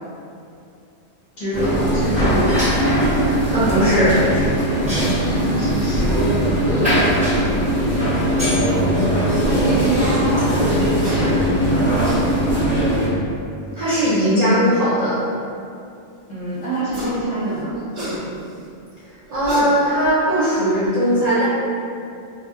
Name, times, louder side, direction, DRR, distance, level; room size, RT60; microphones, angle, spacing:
voice 1, 1.4-2.7 4.8-7.4 9.4-11.4 16.3-17.7, right 1 dB, 45° left, -10 dB, 0.7 m, -26 dB
sound 1, 1.5-13.1, equal, 5° right, 0.8 m, -19 dB
voice 2, 3.5-4.2 13.7-15.2 19.3-21.4, equal, 55° right, -12 dB, 0.4 m, -18 dB
sound 2, 11.0-11.2 11.8-12.2 13.7-13.8 16.7-17.2 17.5-18.6 19.3-20.1, left 1 dB, 75° right, 1.0 m, -30 dB
2.6 x 2.1 x 2.4 m, 2.5 s
omnidirectional pair, 1.2 m